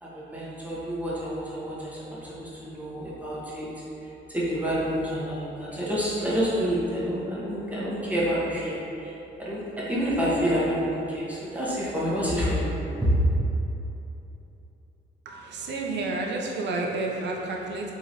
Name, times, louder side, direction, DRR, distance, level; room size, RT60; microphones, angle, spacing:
voice 1, 0.0-3.7 4.3-9.1 9.4-12.7 13.0-13.1, equal, 5° right, -8 dB, 1.0 m, -28 dB
voice 2, 15.3-17.9, right 2 dB, 60° right, 0 dB, 0.5 m, -30 dB
3.7 x 3.0 x 2.7 m, 3.0 s
cardioid pair, 90°, 20 cm